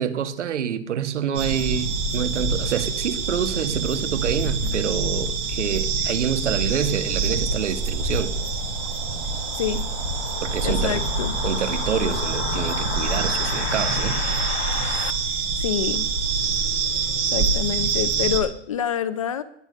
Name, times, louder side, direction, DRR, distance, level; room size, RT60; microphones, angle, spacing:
voice 1, 0.0-8.3 10.4-11.0 11.4-14.2, right 8 dB, 75° right, 1.9 m, -27 dB
sound 1, 1.3-18.4, right 4 dB, 10° right, 0.6 m, -26 dB
sound 2, 6.4-15.1, left 10 dB, 55° left, 1.1 m, -34 dB
voice 2, 10.6-11.3 15.3-16.1 17.3-19.4, left 9 dB, 30° left, 0.7 m, -27 dB
20.0 x 9.7 x 5.5 m
hypercardioid pair, 180°, 36 cm